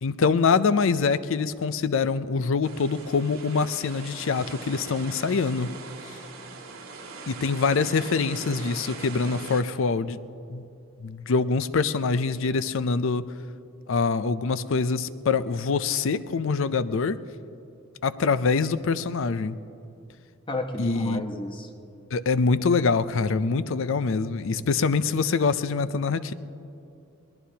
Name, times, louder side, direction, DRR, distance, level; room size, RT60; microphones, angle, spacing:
voice 1, 0.0-5.7 7.3-10.2 10.5-10.6 11.0-13.3 13.9-17.2 18.0-19.6 20.8-21.2 22.1-26.3, left 4 dB, 65° left, 15 dB, 0.5 m, -24 dB
sound 1, 2.6-9.6, right 4 dB, 75° right, 2.2 m, -41 dB
voice 2, 20.5-21.7, left 2 dB, 25° left, 5 dB, 1.0 m, -32 dB
23.0 x 19.0 x 2.9 m, 2.6 s
head